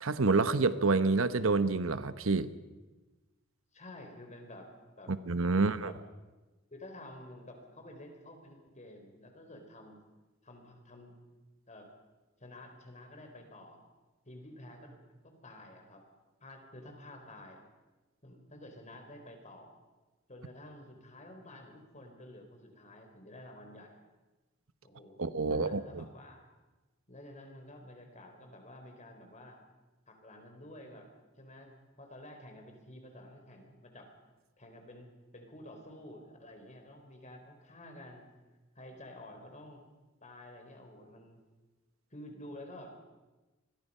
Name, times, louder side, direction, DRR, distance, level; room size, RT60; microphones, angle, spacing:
voice 1, 0.0-2.5 5.1-5.9 25.2-26.0, right 3 dB, 70° right, 13 dB, 1.0 m, -28 dB
voice 2, 3.7-5.1 5.5-5.9 6.7-10.0 10.4-11.1 11.7-11.9 12.4-13.8 14.2-16.0 16.4-17.6 18.2-19.8 20.3-24.0 24.8-26.4 27.1-29.6 30.1-31.1 31.4-34.1 34.6-38.3 38.8-39.8 40.2-41.4 42.1-43.0, left 1 dB, 35° left, 4 dB, 4.2 m, -51 dB
27.5 x 21.0 x 5.6 m, 1.2 s
head